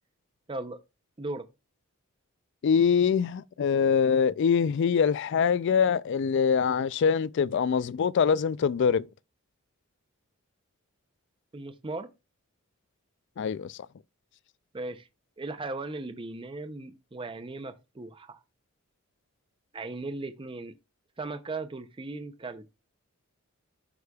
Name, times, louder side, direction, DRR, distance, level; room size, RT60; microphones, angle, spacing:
voice 1, 0.5-0.8 1.2-1.5 11.5-12.1 14.7-15.1 15.4-18.4 19.7-20.7 21.2-22.6, right 2 dB, 25° right, 0.5 m, -37 dB
voice 2, 2.6-9.1 13.4-13.8, left 6 dB, 55° left, 0.3 m, -24 dB
12.5 x 4.9 x 2.3 m
head